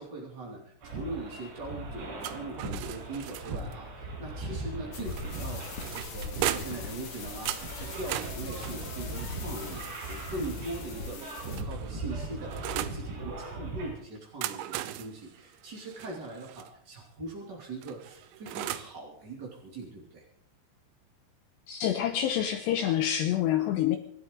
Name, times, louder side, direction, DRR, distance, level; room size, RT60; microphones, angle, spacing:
voice 1, 0.0-9.8 10.1-20.2, right 2 dB, 30° right, -2 dB, 2.0 m, -41 dB
sound 1, 0.8-13.9, right 2 dB, 60° right, 6.6 m, -39 dB
sound 2, 2.2-3.8 5.1-6.9 7.5-10.4 11.2-13.0 14.2-16.7 17.8-19.0, right 14 dB, 80° right, 2.7 m, -38 dB
sound 3, 4.9-11.6, left 4 dB, 50° left, 2.1 m, -42 dB
voice 2, 21.7-24.0, left 11 dB, 85° left, 7 dB, 2.5 m, -27 dB
26.5 x 13.0 x 3.8 m, 0.67 s
omnidirectional pair, 6.0 m